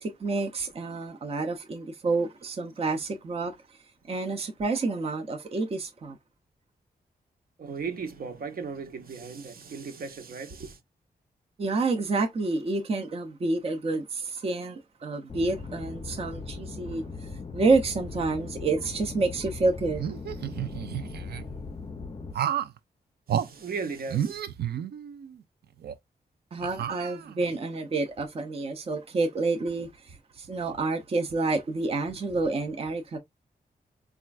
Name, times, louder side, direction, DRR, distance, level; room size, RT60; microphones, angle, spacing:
voice 1, 0.0-3.8 4.1-6.2 11.6-20.0 26.5-33.2, right 3 dB, 35° right, 0.5 m, -29 dB
voice 2, 7.6-10.8 23.3-24.4, right 5 dB, 65° right, 0.8 m, -36 dB
sound 1, 15.3-22.3, left 4 dB, 30° left, 0.4 m, -39 dB
sound 2, 20.0-21.4 22.3-22.8 23.3-23.5 24.1-25.3 25.8-25.9 26.6-27.5, right 10 dB, 85° right, 0.5 m, -31 dB
4.2 x 2.4 x 2.3 m
wide cardioid pair, 150°, 16 cm